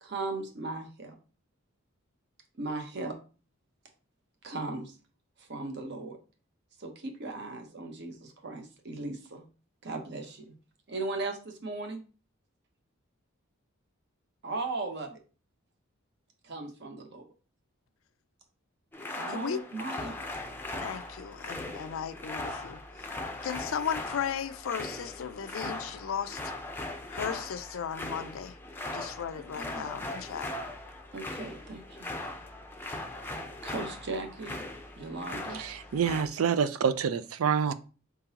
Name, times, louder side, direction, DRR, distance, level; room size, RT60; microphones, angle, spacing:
voice 1, 0.0-1.2 2.5-3.2 4.4-5.0 5.4-6.2 6.8-9.4 9.8-10.5 10.9-12.0 14.4-15.2 16.4-17.3 19.2-20.2 29.4-30.0 31.1-32.1 33.6-34.6 35.0-35.6, right 3 dB, 55° right, 0.9 m, -37 dB
sound 1, 18.9-36.2, left 2 dB, 10° left, 0.5 m, -39 dB
voice 2, 19.3-19.6 20.8-22.8 23.4-26.4 27.1-28.6 28.8-30.5, left 7 dB, 70° left, 0.4 m, -36 dB
voice 3, 35.5-37.7, right 7 dB, 85° right, 0.4 m, -27 dB
4.6 x 3.7 x 2.9 m
head